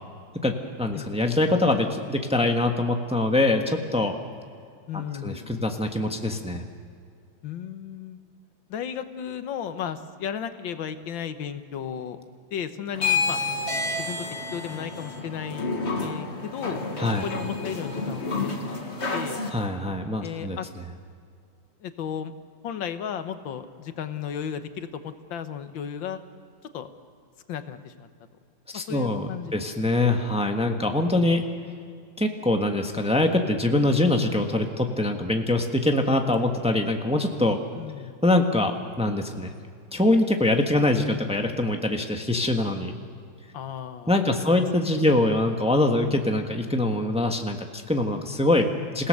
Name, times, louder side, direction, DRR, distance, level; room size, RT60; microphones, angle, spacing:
voice 1, 0.4-4.2 4.9-6.6 17.0-17.2 19.5-20.6 28.7-31.4 32.2-37.6 38.2-39.5 39.9-42.9 44.1-49.1, left 2 dB, 5° right, 3 dB, 1.2 m, -24 dB
voice 2, 4.9-5.5 7.4-8.2 8.7-12.2 12.5-13.4 14.0-14.3 14.5-15.7 16.0-16.8 17.2-19.4 20.2-20.7 21.8-22.3 22.6-26.2 26.7-26.9 27.5-28.1 28.7-29.5 37.7-38.2 43.5-44.7 44.9-45.2, left 8 dB, 90° left, 9 dB, 1.8 m, -34 dB
sound 1, 12.9-19.5, left 4 dB, 35° left, 2.0 m, -29 dB
28.0 x 17.0 x 6.5 m, 2.2 s
omnidirectional pair, 2.0 m